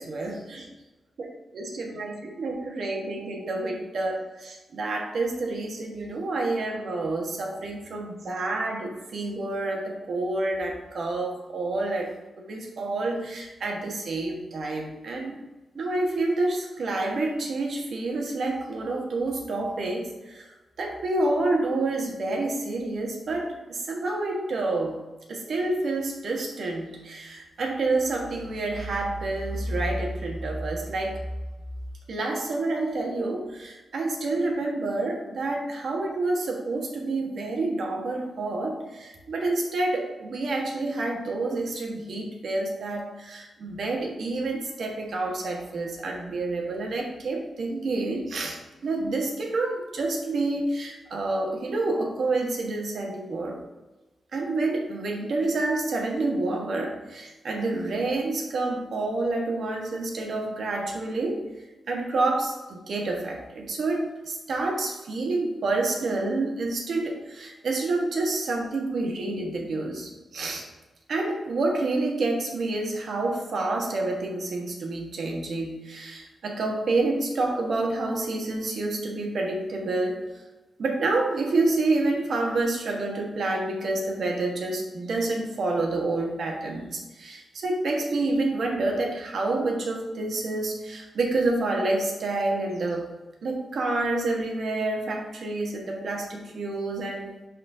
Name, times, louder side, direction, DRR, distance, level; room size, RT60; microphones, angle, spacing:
voice 1, 0.0-0.7 1.2-15.4 15.7-20.5 20.8-25.0 25.3-31.2 32.1-53.6 54.3-61.4 61.9-70.7 71.1-80.2 80.8-93.0 93.4-97.3, right 2 dB, 65° right, 1 dB, 1.3 m, -28 dB
10.5 x 4.0 x 2.7 m, 1.1 s
wide cardioid pair, 130°, 0 cm